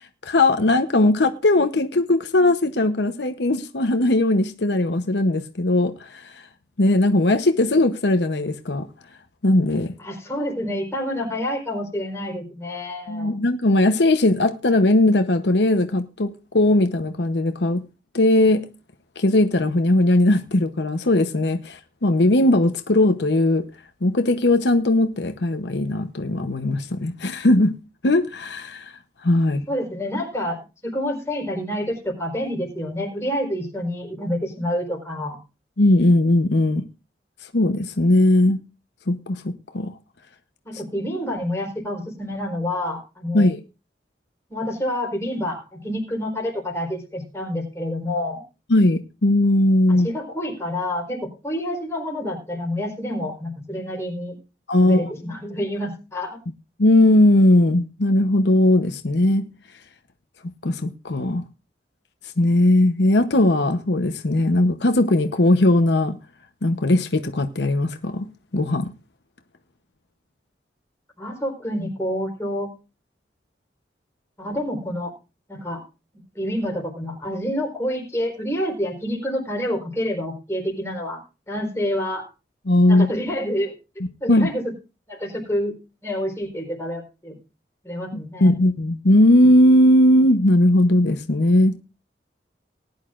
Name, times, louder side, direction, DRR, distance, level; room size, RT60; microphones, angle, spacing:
voice 1, 0.0-6.4 6.8-8.9 9.4-9.9 13.1-17.8 18.1-18.7 19.2-23.6 24.0-27.7 28.0-28.9 29.2-29.6 35.8-36.8 37.5-38.6 39.1-39.9 43.3-43.6 48.7-50.1 54.7-55.1 56.8-59.5 60.6-61.4 62.4-66.2 66.6-68.3 68.5-68.9 82.7-83.1 84.3-84.5 88.4-91.7, left 1 dB, 80° left, 0.9 m, -18 dB
voice 2, 10.0-13.3 29.7-35.4 40.6-43.5 44.5-48.4 49.9-54.4 54.8-56.4 71.2-72.7 74.4-75.1 75.5-75.8 76.3-81.2 81.5-82.3 82.9-83.7 84.2-84.6 85.1-85.8 86.0-87.4 87.8-88.5, equal, 15° left, 4.2 m, -28 dB
19.5 x 10.5 x 2.5 m
head